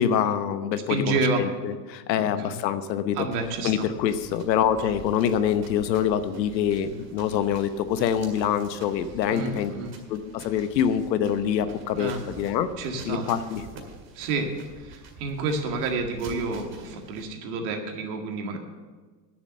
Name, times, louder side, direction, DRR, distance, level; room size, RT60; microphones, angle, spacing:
voice 1, 0.0-3.3 3.6-9.7 10.1-12.7 13.1-13.6, left 9 dB, 85° left, 11 dB, 1.0 m, -25 dB
voice 2, 0.9-1.5 2.2-2.6 3.2-3.9 9.3-9.9 11.9-12.2 12.8-13.3 14.1-14.5 14.8-18.6, right 3 dB, 65° right, 3 dB, 2.1 m, -29 dB
sound 1, 3.3-17.2, right 3 dB, 30° right, 2.0 m, -47 dB
9.8 x 7.2 x 7.6 m, 1.4 s
supercardioid pair, 125°, 50 cm